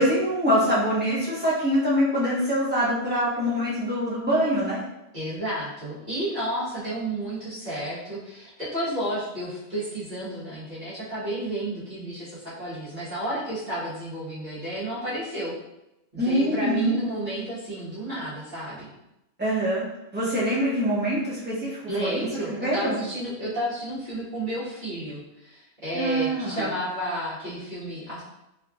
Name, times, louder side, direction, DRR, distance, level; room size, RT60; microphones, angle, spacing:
voice 1, 0.0-4.8 16.2-17.0 19.4-19.8 20.1-23.0 25.9-26.7, equal, 10° right, -8 dB, 1.1 m, -24 dB
voice 2, 5.1-15.5 16.1-18.9 21.9-28.2, right 1 dB, 40° right, -12 dB, 1.5 m, -31 dB
3.6 x 3.4 x 2.4 m, 0.89 s
omnidirectional pair, 1.3 m